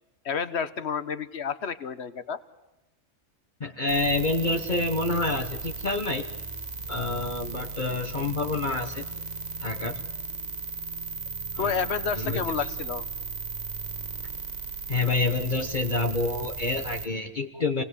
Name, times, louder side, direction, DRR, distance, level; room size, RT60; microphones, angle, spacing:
voice 1, 0.2-2.4 11.6-13.1, left 6 dB, 60° left, 13 dB, 1.4 m, -30 dB
voice 2, 3.6-6.2 6.9-9.1 9.6-10.0 11.5-11.9 12.2-12.4 14.9-17.8, left 3 dB, 40° left, 5 dB, 1.3 m, -28 dB
sound 1, 3.9-17.1, right 4 dB, 35° right, 1.3 m, -36 dB
28.0 x 19.0 x 8.4 m, 0.99 s
omnidirectional pair, 1.3 m